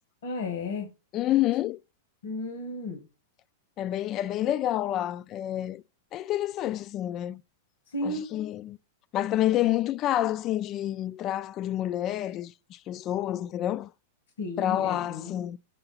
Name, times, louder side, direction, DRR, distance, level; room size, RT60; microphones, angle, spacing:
voice 1, 0.2-0.9 2.2-3.0 7.9-8.3 14.4-15.4, left 2 dB, 85° left, 1.8 m, -33 dB
voice 2, 1.1-1.8 3.8-5.8 6.1-7.4 8.0-8.8 9.1-13.9 14.6-15.6, left 13 dB, 35° left, 0.3 m, -28 dB
6.9 x 4.8 x 5.6 m
hypercardioid pair, 135°, 0 cm